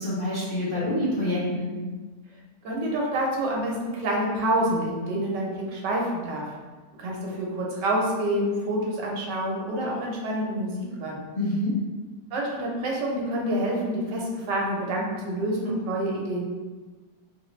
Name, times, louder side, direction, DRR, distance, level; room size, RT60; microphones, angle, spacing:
voice 1, 0.0-1.7 11.4-11.8, left 1 dB, 40° left, -10 dB, 0.8 m, -26 dB
voice 2, 2.6-6.5 7.0-10.7 11.0-11.2 12.3-16.4, right 1 dB, 70° right, -2 dB, 1.3 m, -27 dB
4.4 x 2.5 x 3.1 m, 1.3 s
omnidirectional pair, 2.0 m